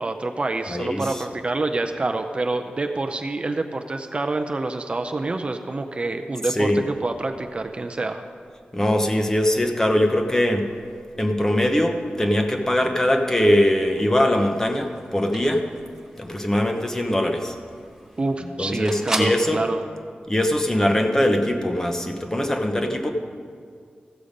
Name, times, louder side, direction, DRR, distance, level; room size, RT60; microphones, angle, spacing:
voice 1, 0.0-8.2 18.2-19.8, right 2 dB, 35° right, 6 dB, 0.5 m, -27 dB
voice 2, 0.7-1.2 6.5-6.8 8.7-10.7 11.2-15.7 16.2-17.5 18.6-19.6 20.3-23.1, left 1 dB, 15° left, 4 dB, 0.9 m, -21 dB
sound 1, 14.3-19.5, right 1 dB, 15° right, 1.2 m, -36 dB
15.0 x 6.9 x 5.1 m, 2.1 s
wide cardioid pair, 115°, 3 cm